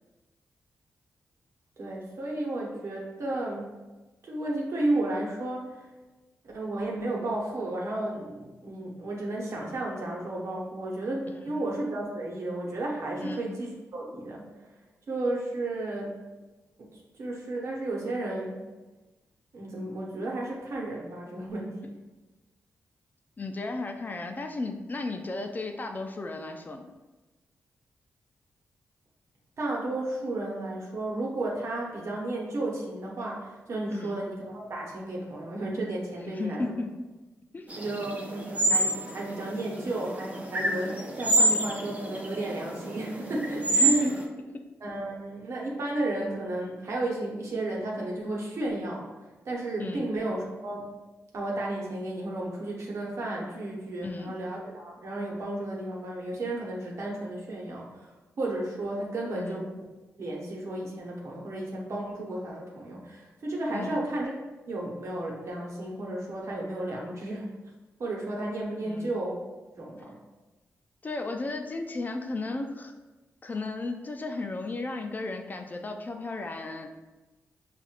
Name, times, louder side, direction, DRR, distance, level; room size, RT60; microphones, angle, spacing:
voice 1, 1.8-3.7 4.2-5.9 6.5-14.5 15.1-16.2 16.8-18.6 19.5-21.9 29.6-36.6 37.8-44.1 44.8-49.1 49.4-50.9 51.3-58.1 58.4-59.6 60.2-64.3 64.7-67.5 68.0-69.4 69.7-70.2, right 2 dB, 65° right, -2 dB, 1.0 m, -33 dB
voice 2, 23.4-26.9 33.9-34.2 36.2-37.0 37.5-37.7 43.7-44.1 44.5-44.6 49.8-50.1 54.0-54.4 59.3-59.7 63.7-64.0 68.8-69.2 71.0-72.9 73.4-76.9, left 2 dB, 35° left, 4 dB, 0.4 m, -34 dB
sound 1, 37.7-44.2, right 2 dB, 30° right, 0.7 m, -28 dB
5.6 x 2.5 x 2.5 m, 1.1 s
cardioid pair, 55°, 5 cm